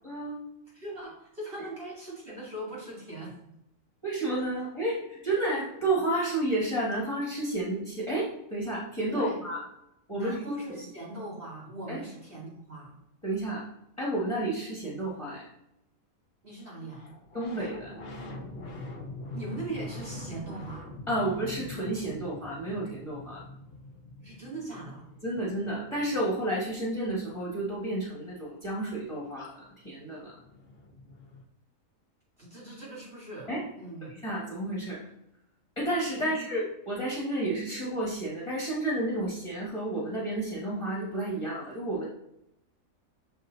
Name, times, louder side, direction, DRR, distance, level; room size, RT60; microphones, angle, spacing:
voice 1, 0.0-0.4 1.6-1.7 4.0-9.6 10.1-10.8 11.9-12.0 13.2-13.6 14.0-15.4 17.3-17.9 21.1-23.4 25.2-30.3 33.5-33.7 34.0-35.0 35.8-42.1, right 1 dB, 20° left, -6 dB, 1.5 m, -31 dB
voice 2, 0.7-3.4 9.1-9.4 10.1-13.0 16.4-17.1 19.3-20.9 24.2-25.1 32.4-33.5 33.8-34.1 36.2-36.5, right 2 dB, 40° right, -6 dB, 2.4 m, -40 dB
sound 1, 16.9-27.3 29.4-29.5 29.6-31.4, left 2 dB, 45° left, 1.0 m, -44 dB
6.6 x 4.0 x 4.0 m, 0.82 s
omnidirectional pair, 1.5 m